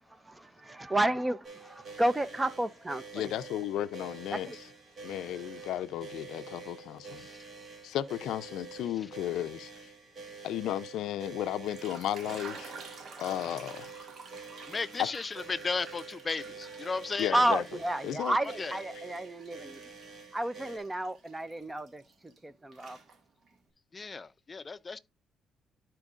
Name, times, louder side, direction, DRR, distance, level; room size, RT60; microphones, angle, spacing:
voice 1, 0.2-1.4 1.7-3.3 4.3-4.6 17.3-19.8 20.3-23.0, right 1 dB, 15° right, 0.7 m, -31 dB
sound 1, 1.4-20.8, right 4 dB, 50° right, 2.3 m, -47 dB
voice 2, 3.1-4.5 5.0-7.3 7.8-9.7 10.4-12.7 13.2-13.9 17.2-17.6 18.0-18.3, left 12 dB, 85° left, 0.5 m, -34 dB
sound 2, 11.5-17.9 18.3-22.4 22.7-23.5, right 4 dB, 65° right, 1.9 m, -50 dB
voice 3, 14.7-17.4 18.6-18.8 23.9-25.0, left 4 dB, 30° left, 0.5 m, -35 dB
12.0 x 4.5 x 2.4 m
cardioid pair, 90°, 0 cm